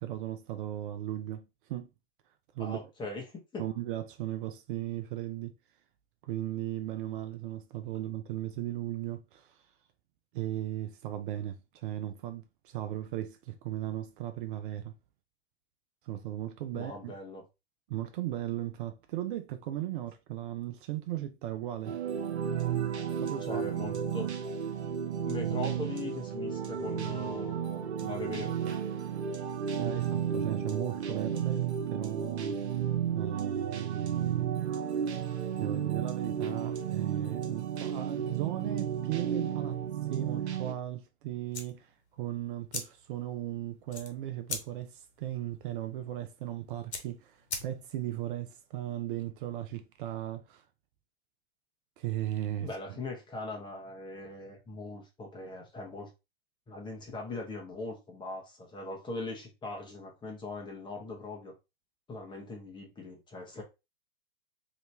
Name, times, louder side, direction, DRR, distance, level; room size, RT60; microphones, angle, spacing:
voice 1, 0.0-1.9 2.5-2.8 3.6-5.5 6.2-9.6 10.3-14.9 16.0-17.2 17.9-22.0 23.2-23.6 29.8-32.6 33.1-34.5 35.6-39.8 40.1-41.9 42.2-50.6 52.0-53.0, right 13 dB, 50° right, 0.5 m, -37 dB
voice 2, 2.6-3.2 3.5-3.6 16.7-17.4 23.4-24.3 25.2-28.7 52.6-56.1 56.7-61.5 62.1-63.6, left 2 dB, 15° left, 1.1 m, -40 dB
sound 1, 21.8-40.7, right 8 dB, 85° right, 0.7 m, -33 dB
sound 2, 41.5-48.1, left 3 dB, 85° left, 1.0 m, -43 dB
3.0 x 2.8 x 3.3 m
hypercardioid pair, 110°, 33 cm